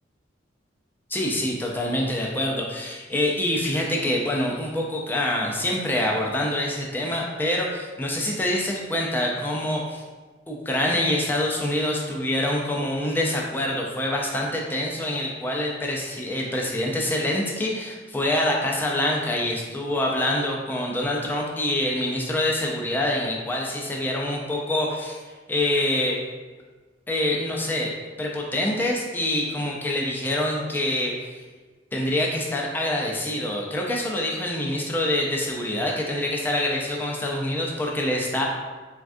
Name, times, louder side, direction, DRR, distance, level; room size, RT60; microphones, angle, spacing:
voice 1, 1.1-10.0 10.5-25.2 25.5-26.2 27.1-31.4 31.9-38.4, left 1 dB, 10° left, -2 dB, 0.3 m, -26 dB
3.4 x 2.2 x 2.5 m, 1.3 s
head